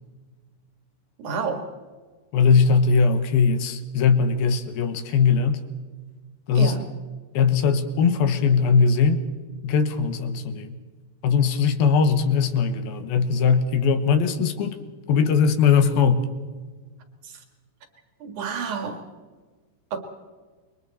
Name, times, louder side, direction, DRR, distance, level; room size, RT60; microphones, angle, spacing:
voice 1, 1.2-1.6 6.5-6.8 17.2-17.4 18.2-19.0 19.9-20.0, right 5 dB, 50° right, 5 dB, 3.0 m, -29 dB
voice 2, 2.3-5.6 6.5-6.8 7.3-9.2 9.6-10.8 11.2-16.3, left 5 dB, 70° left, 9 dB, 2.6 m, -20 dB
29.0 x 23.0 x 4.3 m, 1.4 s
omnidirectional pair, 5.2 m